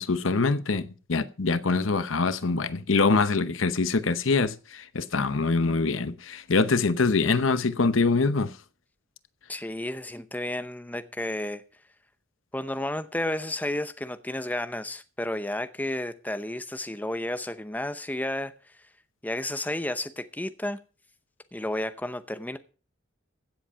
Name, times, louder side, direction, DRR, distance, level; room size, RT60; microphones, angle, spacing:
voice 1, 0.0-8.6, left 4 dB, 85° left, 0.9 m, -24 dB
voice 2, 9.5-11.6 12.5-18.5 19.2-20.8 21.5-22.6, left 1 dB, 10° left, 0.7 m, -32 dB
15.5 x 7.7 x 5.6 m
head